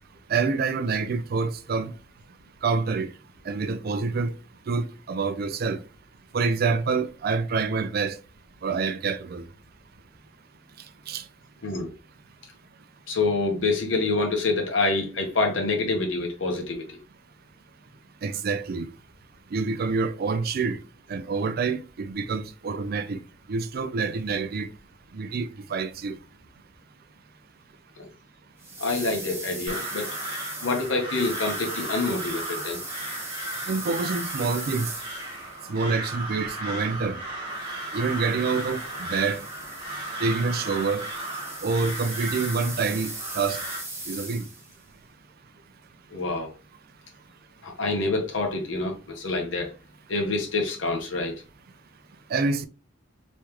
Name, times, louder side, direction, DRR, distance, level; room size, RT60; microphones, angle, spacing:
voice 1, 0.3-1.9 2.6-3.1 3.5-4.3 4.7-5.8 6.3-8.2 8.6-9.5 11.1-11.2 18.2-18.9 19.5-20.8 21.1-23.2 23.5-24.7 25.1-26.2 33.7-34.9 35.7-37.2 37.9-39.4 40.2-41.0 41.6-43.6 44.1-44.4 52.3-52.7, right 4 dB, 50° right, 0.4 m, -27 dB
voice 2, 11.6-11.9 13.1-17.0 28.0-28.1 28.8-30.1 30.6-32.8 46.1-46.5 47.6-49.7 50.1-51.3, left 3 dB, 75° left, 1.1 m, -27 dB
sound 1, 28.6-35.6 37.5-44.8, right 2 dB, 10° right, 1.2 m, -39 dB
Crow, 29.7-43.8, right 1 dB, 30° right, 1.7 m, -35 dB
3.5 x 3.1 x 3.0 m
head